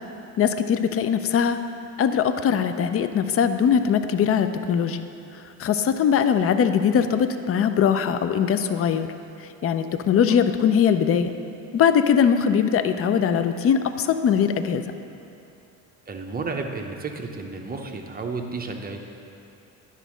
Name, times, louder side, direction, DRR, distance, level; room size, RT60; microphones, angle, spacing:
voice 1, 0.4-1.6 2.0-5.0 5.6-9.1 9.4-11.3 11.7-14.8, left 7 dB, 35° left, 10 dB, 0.5 m, -21 dB
voice 2, 16.1-19.0, right 4 dB, 20° right, 3 dB, 0.8 m, -32 dB
9.9 x 4.0 x 6.2 m, 2.6 s
supercardioid pair, 85°, 42 cm